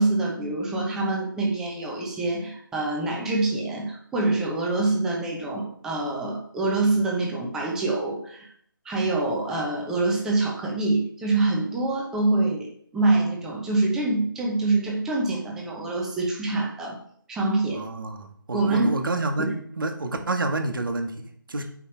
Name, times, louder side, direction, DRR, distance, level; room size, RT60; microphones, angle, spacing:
voice 1, 0.0-8.5 8.8-17.0 17.3-17.8 18.5-18.9 19.4-19.5, right 2 dB, 5° right, -2 dB, 0.8 m, -25 dB
voice 2, 17.7-21.6, right 2 dB, 70° right, 6 dB, 1.3 m, -29 dB
8.4 x 5.2 x 4.3 m, 0.64 s
figure-of-eight pair, 160°, 11 cm